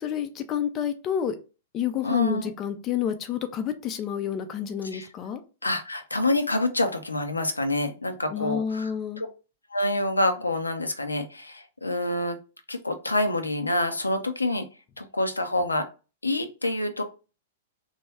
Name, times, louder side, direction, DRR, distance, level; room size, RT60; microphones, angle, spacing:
voice 1, 0.0-1.4 1.7-5.4 8.3-9.2, left 8 dB, 30° left, 7 dB, 0.4 m, -29 dB
voice 2, 2.0-2.5 4.9-5.1 5.6-8.9 9.2-9.3 9.7-12.4 12.7-14.7 15.0-15.8 16.2-17.0, left 1 dB, 80° left, 7 dB, 0.5 m, -27 dB
3.0 x 2.2 x 3.3 m, 0.32 s
figure-of-eight pair, 100°, 0 cm